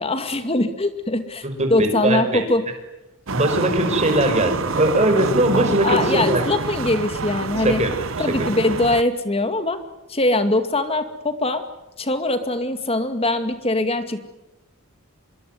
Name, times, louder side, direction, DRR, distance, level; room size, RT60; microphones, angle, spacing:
voice 1, 0.0-1.4 1.7-2.6 5.8-7.8 8.2-9.8 10.1-11.6 12.0-14.2, left 2 dB, 25° left, 9 dB, 2.3 m, -22 dB
voice 2, 1.6-2.4 3.3-6.4 7.6-7.9 8.2-8.5, right 1 dB, 30° right, 5 dB, 5.7 m, -20 dB
sound 1, 3.3-9.0, right 4 dB, 65° right, 0.9 m, -27 dB
26.5 x 22.0 x 9.6 m, 0.95 s
head